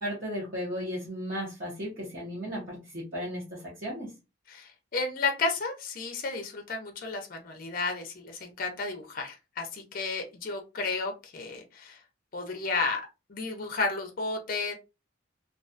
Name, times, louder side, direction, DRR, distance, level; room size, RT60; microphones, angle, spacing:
voice 1, 0.0-4.1, equal, 45° right, -7 dB, 0.8 m, -35 dB
voice 2, 4.5-12.0 12.3-13.0 13.3-14.7, left 3 dB, 45° left, 4 dB, 0.5 m, -32 dB
2.3 x 2.2 x 2.4 m, 0.26 s
head